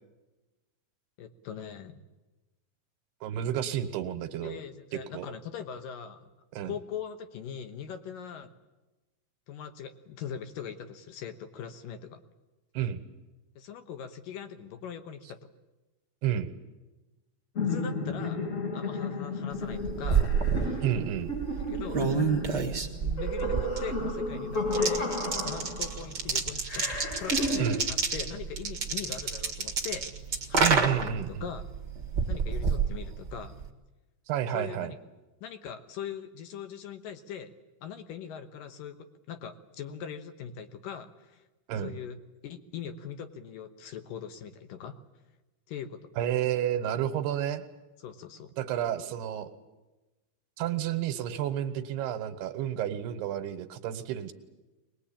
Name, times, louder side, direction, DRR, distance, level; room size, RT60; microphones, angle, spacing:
voice 1, 1.2-2.0 4.4-6.3 6.6-8.5 9.5-12.2 13.6-15.5 17.7-18.4 18.7-20.4 21.7-22.3 23.0-25.1 25.5-26.9 27.2-30.1 30.5-30.8 31.0-31.6 32.3-33.6 34.5-35.0 35.4-37.5 37.8-41.4 41.8-42.2 42.4-45.0 45.7-46.1 48.0-48.5, left 8 dB, 70° left, 8 dB, 2.5 m, -41 dB
voice 2, 3.2-4.6 4.9-5.3 6.5-6.7 12.7-13.0 16.2-16.5 20.8-21.3 27.6-27.8 30.6-31.5 34.3-34.9 41.7-41.9 46.2-47.6 48.6-49.5 50.6-54.3, right 10 dB, 85° right, 10 dB, 3.3 m, -30 dB
sound 1, 17.6-26.1 26.7-27.8, left 2 dB, 40° left, 1.1 m, -33 dB
sound 2, 19.6-33.7, right 5 dB, 40° right, 1.6 m, -30 dB
22.5 x 21.0 x 8.7 m, 1.1 s
omnidirectional pair, 4.6 m